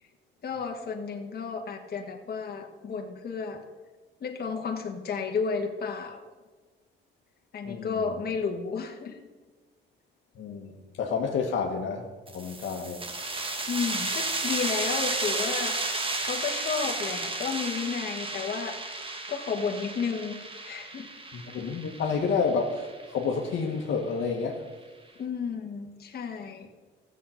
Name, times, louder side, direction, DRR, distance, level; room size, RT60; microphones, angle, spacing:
voice 1, 0.4-3.6 4.2-6.2 7.5-9.2 13.7-15.8 16.2-20.4 20.6-21.1 25.2-26.7, left 5 dB, 50° left, 3 dB, 1.5 m, -32 dB
voice 2, 7.6-8.2 10.3-13.1 21.3-24.7, left 5 dB, 75° left, 2 dB, 1.4 m, -30 dB
sound 1, 12.3-23.6, right 2 dB, 25° right, 1.4 m, -33 dB
15.0 x 7.5 x 5.7 m, 1.3 s
cardioid pair, 90°, 20 cm